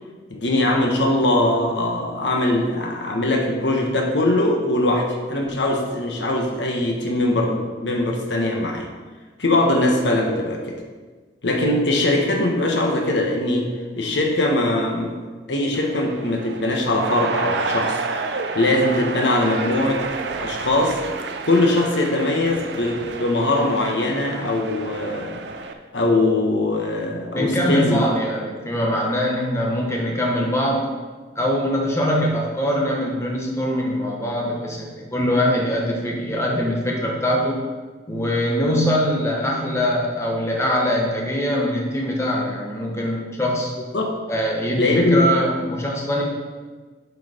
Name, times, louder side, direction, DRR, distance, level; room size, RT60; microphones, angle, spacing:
voice 1, 0.3-8.9 9.4-10.8 11.4-13.7 14.0-15.2 15.5-18.0 18.5-20.1 20.4-21.0 21.5-25.4 25.9-28.0 43.9-44.1 44.8-45.3, left 1 dB, 80° left, 1 dB, 1.2 m, -21 dB
sound 1, 15.7-25.7, right 4 dB, 70° right, 0.6 m, -30 dB
voice 2, 27.3-30.9 31.3-37.6 38.1-43.7 44.3-46.2, equal, 15° left, -2 dB, 1.1 m, -22 dB
8.0 x 4.7 x 5.0 m, 1.4 s
head